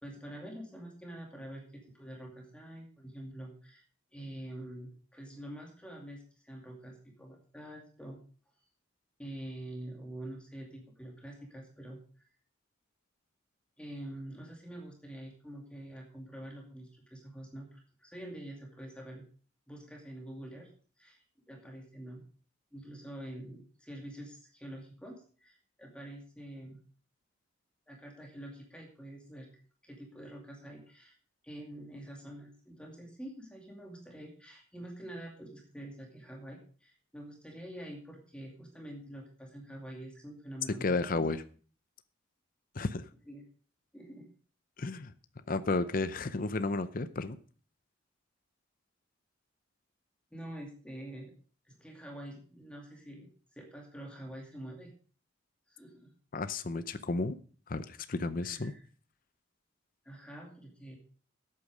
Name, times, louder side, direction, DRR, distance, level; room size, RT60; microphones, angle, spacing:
voice 1, 0.0-3.8 4.1-8.2 9.2-12.3 13.8-19.2 19.7-20.7 21.0-22.2 22.7-26.8 27.9-29.5 29.8-31.1 31.4-41.2 43.3-43.4 43.9-44.3 50.3-51.3 51.6-54.9 55.7-56.1 58.4-58.8 60.0-61.0, right 1 dB, 5° left, 0 dB, 2.4 m, -46 dB
voice 2, 40.7-41.4 42.8-43.1 44.8-45.1 45.5-47.4 56.3-57.4 57.7-58.7, left 3 dB, 45° left, 11 dB, 0.6 m, -32 dB
13.5 x 8.4 x 5.0 m, 0.41 s
head